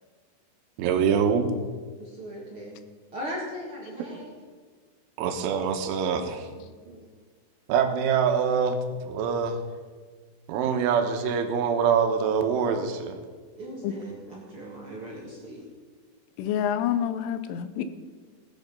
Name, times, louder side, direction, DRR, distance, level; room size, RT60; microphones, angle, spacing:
voice 1, 0.8-1.5 5.2-6.5 7.7-9.6 10.5-13.2, right 6 dB, 85° right, 6 dB, 3.6 m, -24 dB
voice 2, 2.0-2.8 3.1-4.3 6.5-7.0 13.6-15.7, equal, 55° right, -4 dB, 1.4 m, -39 dB
voice 3, 16.4-17.8, left 9 dB, 85° left, 11 dB, 3.3 m, -27 dB
18.5 x 8.4 x 5.3 m, 1.5 s
omnidirectional pair, 5.4 m